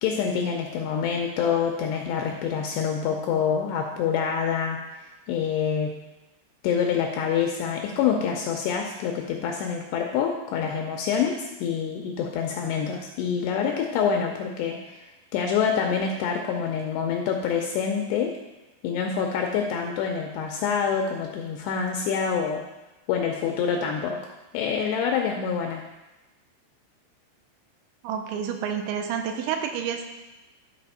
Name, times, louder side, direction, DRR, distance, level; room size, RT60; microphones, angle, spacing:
voice 1, 0.0-4.8 5.3-6.0 6.6-15.0 15.3-18.3 18.8-22.6 23.1-24.2 24.5-25.8, left 7 dB, 85° left, 2 dB, 2.5 m, -26 dB
voice 2, 28.0-30.1, right 8 dB, 80° right, 5 dB, 2.9 m, -29 dB
12.0 x 4.2 x 5.6 m, 1.0 s
omnidirectional pair, 5.5 m